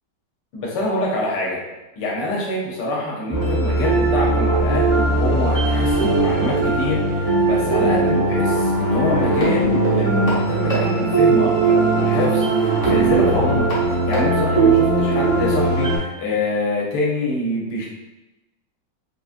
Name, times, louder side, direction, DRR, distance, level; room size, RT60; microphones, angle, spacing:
voice 1, 0.5-1.6 2.0-17.9, left 2 dB, 70° left, -3 dB, 1.4 m, -25 dB
sound 1, 3.3-16.0, right 3 dB, 45° left, 0.4 m, -19 dB
3.9 x 2.4 x 2.5 m, 1.0 s
omnidirectional pair, 2.1 m